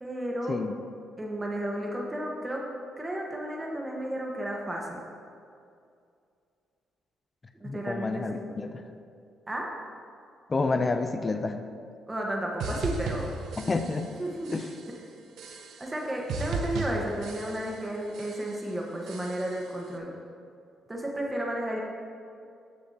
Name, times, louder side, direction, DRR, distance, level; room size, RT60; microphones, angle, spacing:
voice 1, 0.0-0.6 1.2-2.6 3.0-5.0 7.6-8.6 9.5-9.7 12.1-13.3 14.2-14.5 14.9-15.0 15.8-20.2 20.9-21.8, right 1 dB, 15° right, -1 dB, 1.2 m, -33 dB
voice 2, 7.6-8.8 10.5-11.7 13.6-14.1 14.5-14.7, left 3 dB, 30° left, 8 dB, 0.5 m, -29 dB
sound 1, 12.6-14.2 14.4-15.0 15.4-16.0 16.3-17.9 18.1-18.7 19.1-19.7, right 4 dB, 75° right, 0.8 m, -36 dB
12.0 x 6.6 x 2.8 m, 2.4 s
cardioid pair, 90°, 0 cm